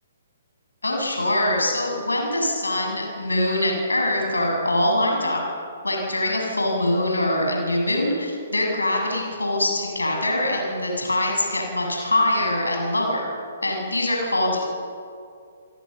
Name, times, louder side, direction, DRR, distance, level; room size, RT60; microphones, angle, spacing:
voice 1, 0.8-5.4 5.8-13.3 13.6-14.6, left 1 dB, 75° left, 0 dB, 7.7 m, -23 dB
29.0 x 23.5 x 6.9 m, 2.4 s
figure-of-eight pair, 125°, 0 cm